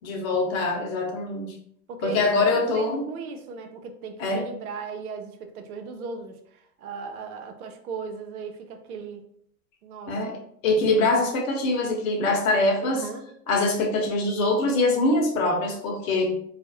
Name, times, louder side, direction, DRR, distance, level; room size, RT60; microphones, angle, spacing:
voice 1, 0.0-1.5 2.0-3.1 4.2-4.4 10.1-10.4 10.6-13.0 13.5-16.3, left 2 dB, 65° left, 1 dB, 0.9 m, -23 dB
voice 2, 1.9-9.2 9.8-10.4 12.8-13.2, right 4 dB, 80° right, 6 dB, 0.6 m, -37 dB
2.4 x 2.0 x 2.6 m, 0.68 s
hypercardioid pair, 95°, 43 cm